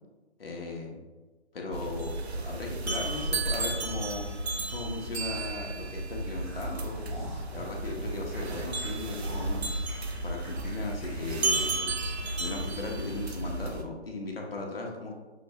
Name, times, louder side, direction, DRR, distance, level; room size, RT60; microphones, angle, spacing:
voice 1, 0.4-1.0 1.5-4.3 4.7-7.0 7.5-9.7 10.2-11.9 12.4-15.1, left 3 dB, 55° left, 0 dB, 1.0 m, -37 dB
sound 1, 1.7-13.8, right 2 dB, 65° right, 0.7 m, -33 dB
sound 2, 6.2-12.5 12.9-13.0 13.4-13.6, equal, 5° right, 1.1 m, -47 dB
6.1 x 2.8 x 3.1 m, 1.3 s
figure-of-eight pair, 160°, 34 cm